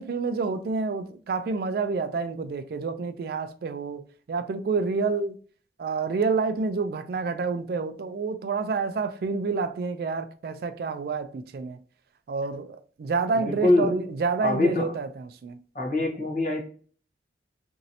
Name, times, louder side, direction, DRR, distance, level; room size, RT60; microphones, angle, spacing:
voice 1, 0.0-4.0 4.3-5.4 5.8-11.8 12.3-15.6, right 4 dB, 55° right, 0.3 m, -28 dB
voice 2, 13.3-14.0 14.4-14.9 15.7-16.6, left 2 dB, 45° left, 1.0 m, -24 dB
3.0 x 2.6 x 2.7 m
head